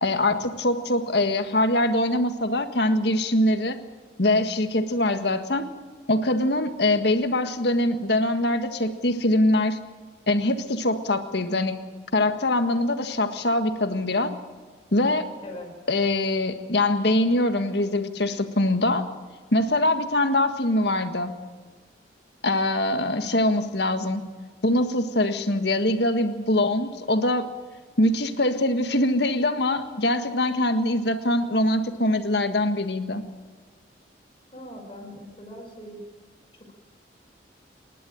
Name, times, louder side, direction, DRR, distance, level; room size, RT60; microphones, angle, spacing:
voice 1, 0.0-3.8 4.2-5.7 6.1-9.8 10.3-11.8 12.1-14.3 14.9-15.3 15.9-19.1 19.5-21.4 22.4-24.2 24.6-27.5 28.0-33.2, left 1 dB, 60° left, 7 dB, 1.7 m, -23 dB
voice 2, 34.5-36.0 36.6-36.7, left 1 dB, 30° left, 0 dB, 5.8 m, -41 dB
27.5 x 11.5 x 8.9 m, 1.5 s
head